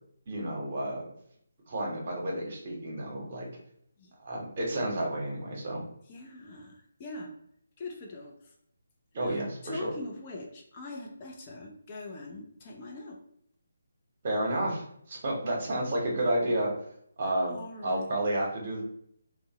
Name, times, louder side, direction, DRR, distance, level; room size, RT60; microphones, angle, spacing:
voice 1, 0.3-1.0 1.7-3.5 4.2-5.8 9.1-9.9 14.2-16.7 17.2-17.5 17.8-18.8, right 1 dB, 40° right, -1 dB, 0.8 m, -31 dB
voice 2, 6.1-7.4 7.8-8.5 9.2-13.2 17.5-18.2, left 2 dB, 25° left, 0 dB, 0.4 m, -42 dB
2.6 x 2.0 x 2.8 m, 0.69 s
figure-of-eight pair, 150°, 0 cm